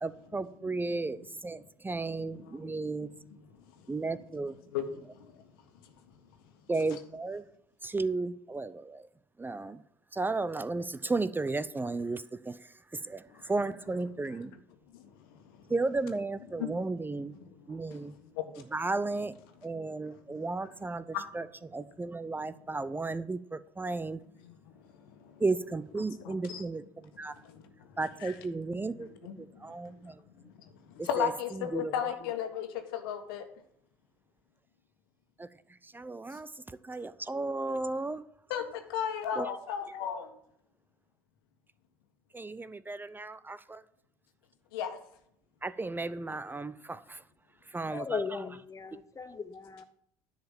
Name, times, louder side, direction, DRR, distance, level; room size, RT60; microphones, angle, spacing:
voice 1, 0.0-3.1 3.9-4.5 6.7-7.4 7.8-9.1 9.4-9.8 10.1-12.6 13.0-14.5 15.7-17.3 17.7-18.1 18.7-19.3 19.6-24.2 25.4-27.3 28.0-29.1 29.4-30.1 31.0-31.9 35.4-35.5 35.9-36.5 36.8-38.2 39.4-39.6 42.3-43.8 45.6-47.2 47.7-48.4, right 3 dB, 15° right, 15 dB, 0.6 m, -34 dB
voice 2, 2.2-2.7 3.0-3.4 4.7-4.9 5.1-5.3 14.3-14.4 14.9-15.1 16.6-16.7 17.3-17.7 18.3-18.4 20.3-20.4 21.1-21.2 24.4-24.5 26.2-26.6 27.4-27.6 28.2-28.3 29.0-29.4 30.4-30.5 31.0-33.4 38.5-40.3 44.7-45.0, left 9 dB, 80° left, 7 dB, 1.5 m, -35 dB
voice 3, 47.9-49.8, left 5 dB, 25° left, 12 dB, 0.9 m, -37 dB
10.5 x 5.0 x 7.5 m, 0.70 s
hypercardioid pair, 65°, 12 cm